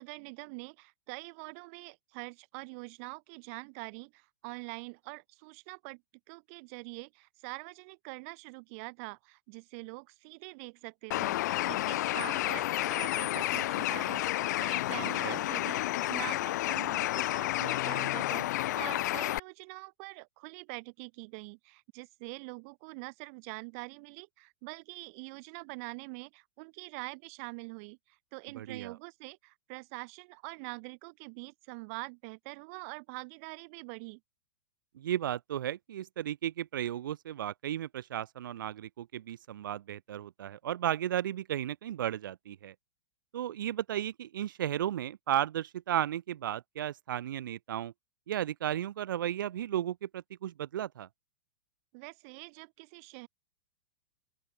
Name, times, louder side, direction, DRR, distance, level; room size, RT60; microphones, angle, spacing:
voice 1, 0.0-6.0 6.3-34.2 51.9-53.3, right 32 dB, 40° right, 4.0 m, -45 dB
Bird, 11.1-19.4, left 15 dB, 55° left, 3.5 m, -31 dB
voice 2, 15.0-15.4 28.5-29.0 34.9-42.7 43.3-47.9 48.3-51.1, right 11 dB, 75° right, 3.3 m, -34 dB
open air
supercardioid pair, 155°, 11 cm